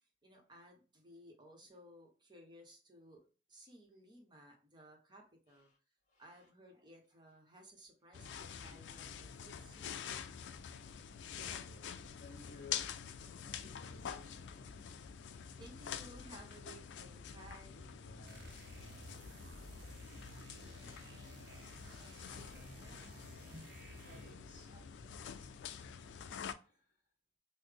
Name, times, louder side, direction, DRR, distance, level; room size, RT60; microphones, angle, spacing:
voice 1, 0.0-5.7 6.2-10.1 15.6-17.9 20.8-24.9, right 1 dB, 25° right, 0.9 m, -59 dB
voice 2, 6.1-6.5 9.6-9.8 11.0-14.9 15.1-15.6 17.7-18.8 24.0-27.0, left 2 dB, 45° left, 1.2 m, -60 dB
sound 1, 8.1-26.5, left 8 dB, 80° left, 0.3 m, -47 dB
sound 2, 18.2-24.5, right 3 dB, 75° right, 0.5 m, -56 dB
3.9 x 2.0 x 3.3 m
head